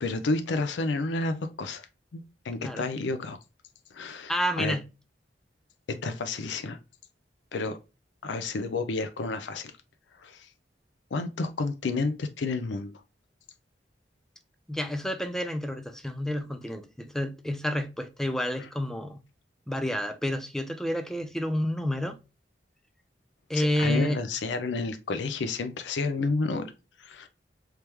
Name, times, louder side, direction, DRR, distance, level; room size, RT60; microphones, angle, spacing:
voice 1, 0.0-1.9 2.1-3.4 3.9-4.8 5.9-6.8 7.5-7.8 8.2-9.7 10.2-10.5 11.1-12.9 18.6-18.7 23.5-26.7 27.0-27.3, left 3 dB, 85° left, 0.5 m, -30 dB
voice 2, 4.3-4.8 14.7-19.2 19.7-22.2 23.5-24.2, equal, 5° left, 0.3 m, -29 dB
3.2 x 3.0 x 3.4 m
head